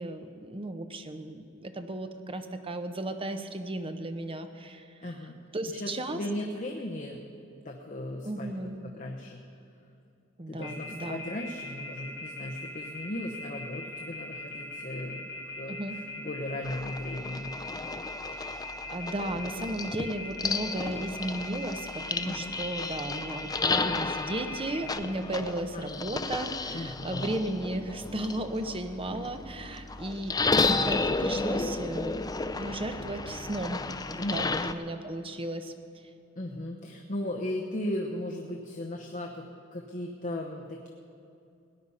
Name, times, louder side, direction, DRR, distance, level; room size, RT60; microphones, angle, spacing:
voice 1, 0.0-4.9 5.5-6.2 8.2-8.8 10.4-11.2 15.7-16.0 18.4-18.6 18.9-30.4 30.6-32.2 32.6-33.8 34.1-35.7, right 1 dB, 30° right, 7 dB, 0.9 m, -35 dB
voice 2, 5.0-5.4 5.7-7.2 7.6-8.5 8.8-9.4 10.5-15.3 15.6-15.8 16.2-17.5 22.2-22.6 25.7-26.3 26.7-27.4 34.2-34.7 36.4-39.5 39.7-40.9, left 1 dB, 40° left, 1 dB, 1.0 m, -36 dB
Telephone, 10.6-24.9, left 2 dB, 65° left, 2.9 m, -40 dB
sound 1, 16.6-34.7, left 3 dB, 20° left, 0.5 m, -33 dB
18.0 x 10.0 x 5.6 m, 2.6 s
head